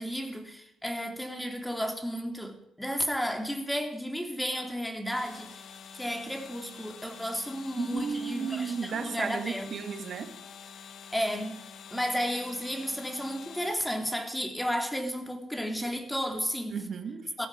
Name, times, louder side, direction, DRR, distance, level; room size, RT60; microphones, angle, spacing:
voice 1, 0.0-9.8 11.1-11.6 11.9-16.8 17.4-17.5, equal, 5° left, 3.3 m, -33 dB
sound 1, 5.1-14.3, left 7 dB, 60° left, 1.9 m, -47 dB
voice 2, 7.8-10.3 16.7-17.3, right 6 dB, 55° right, 1.9 m, -34 dB
17.5 x 15.0 x 5.0 m
cardioid pair, 90°, 0 cm